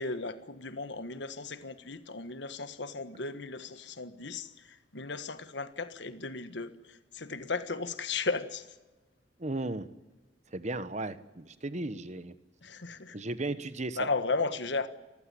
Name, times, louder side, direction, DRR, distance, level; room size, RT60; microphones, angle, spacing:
voice 1, 0.0-8.7 12.6-13.2 14.0-14.9, left 4 dB, 60° left, 12 dB, 1.4 m, -35 dB
voice 2, 9.4-9.9 10.5-12.3 13.1-14.1, right 2 dB, 35° right, 13 dB, 1.1 m, -35 dB
29.5 x 15.0 x 9.9 m, 1.1 s
head